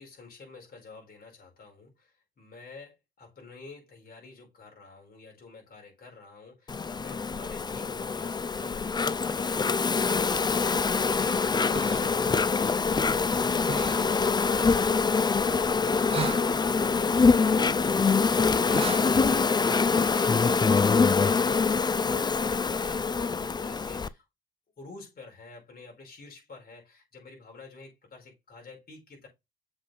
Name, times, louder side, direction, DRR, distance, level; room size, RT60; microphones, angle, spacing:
voice 1, 0.0-18.2 18.4-24.3 24.8-29.3, left 3 dB, 50° left, 4.7 m, -49 dB
Insect, 6.7-24.1, left 4 dB, 20° left, 0.4 m, -25 dB
sound 1, 10.3-19.4, right 5 dB, 30° right, 0.6 m, -41 dB
7.2 x 4.2 x 3.2 m
cardioid pair, 90°, 20 cm